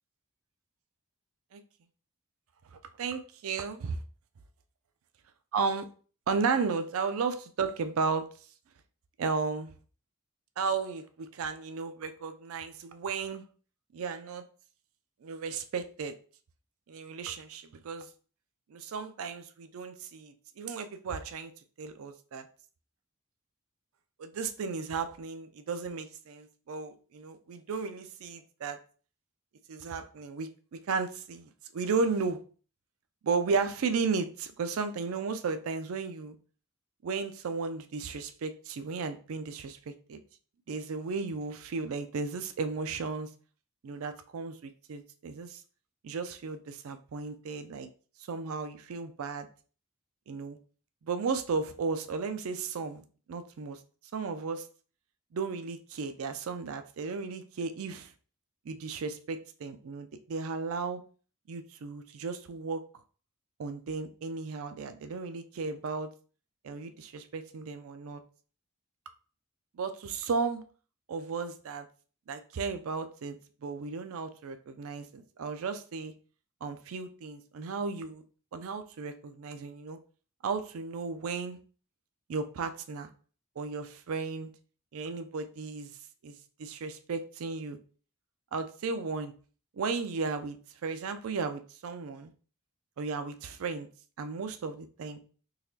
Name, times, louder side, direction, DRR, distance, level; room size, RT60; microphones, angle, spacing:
voice 1, 2.7-4.0 5.5-5.9 6.3-8.3 9.2-9.7 10.6-13.4 13.9-14.5 15.2-16.2 16.9-18.1 18.7-21.5 21.8-22.5 24.2-28.8 29.7-32.4 33.2-36.4 37.0-40.2 40.7-43.3 43.8-45.6 46.0-47.9 48.3-49.5 50.3-50.6 51.0-53.8 54.1-54.7 55.3-58.1 58.7-61.0 61.5-62.8 63.6-66.1 66.6-68.2 69.7-70.6 71.1-71.9 72.3-76.1 76.6-78.2 78.5-80.0 80.4-81.6 82.3-83.1 83.6-84.5 84.9-85.9 86.2-87.8 88.5-89.3 89.7-90.6 90.8-92.3 93.0-93.9 94.2-95.2, right 4 dB, 75° right, 9 dB, 0.4 m, -34 dB
4.0 x 2.8 x 2.7 m, 0.40 s
head